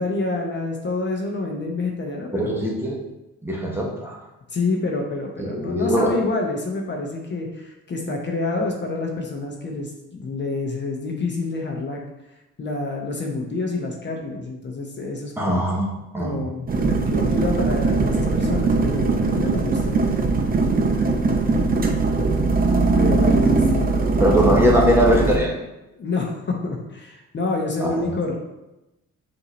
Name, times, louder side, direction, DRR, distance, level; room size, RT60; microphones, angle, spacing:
voice 1, 0.0-2.7 4.5-12.0 12.6-15.6 16.2-19.9 22.5-24.6 26.0-28.3, left 3 dB, 35° left, 1 dB, 0.8 m, -28 dB
voice 2, 2.3-3.0 3.4-4.2 5.4-6.1 15.4-15.9 16.1-16.4 21.6-21.7 24.2-25.6 27.8-28.1, equal, 10° right, -2 dB, 0.9 m, -21 dB
sound 1, 16.7-25.4, right 3 dB, 30° right, 0.6 m, -20 dB
5.6 x 2.7 x 3.0 m, 0.96 s
cardioid pair, 90°, 30 cm